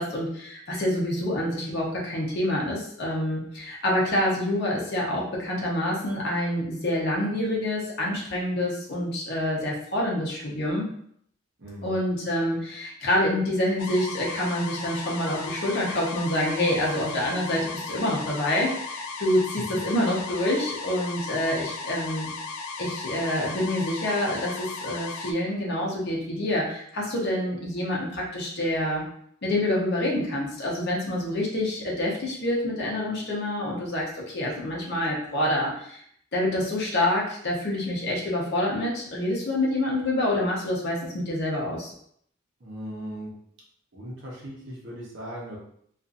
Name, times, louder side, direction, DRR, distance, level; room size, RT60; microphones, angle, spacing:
voice 1, 0.0-10.9 11.8-22.3 22.8-29.0 29.4-36.0 36.3-41.9, left 1 dB, 50° left, -3 dB, 0.7 m, -27 dB
voice 2, 11.6-12.0 19.7-19.8 42.6-43.3 43.9-45.6, equal, 55° right, -3 dB, 0.8 m, -38 dB
sound 1, 13.8-25.3, left 4 dB, 85° left, 0.3 m, -36 dB
2.6 x 2.5 x 2.5 m, 0.67 s
head